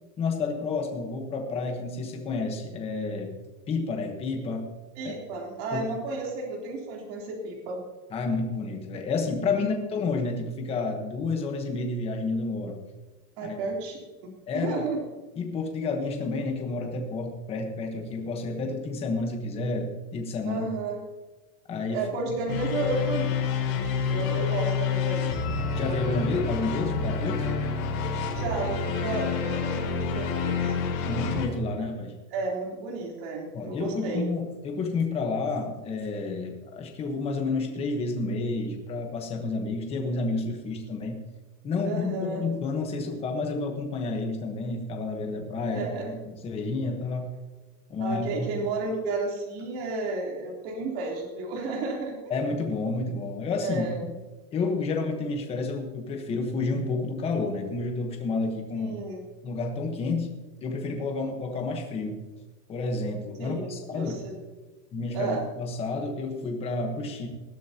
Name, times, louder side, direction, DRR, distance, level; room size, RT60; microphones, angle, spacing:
voice 1, 0.2-3.3 3.7-4.7 5.0-5.1 5.7-5.8 8.1-12.8 13.4-13.6 14.5-14.7 15.4-20.6 21.7-22.0 25.7-27.5 31.0-32.1 33.5-41.2 41.6-45.8 46.2-47.3 47.9-48.5 52.3-53.9 54.5-58.9 59.4-60.3 60.6-62.2 62.7-64.2 64.9-67.3, left 3 dB, 10° left, 2 dB, 1.2 m, -30 dB
voice 2, 5.0-7.9 9.6-9.9 13.4-14.0 14.2-15.0 20.5-21.0 21.9-23.8 24.0-25.4 28.3-30.8 32.3-34.3 41.8-42.5 45.7-46.2 48.0-52.4 53.6-54.0 58.7-59.2 63.4-64.4 65.1-65.4, right 3 dB, 40° right, -1 dB, 3.5 m, -32 dB
sound 1, 22.5-31.5, left 5 dB, 85° left, 4.8 m, -28 dB
20.0 x 11.5 x 2.9 m, 1.2 s
supercardioid pair, 180°, 48 cm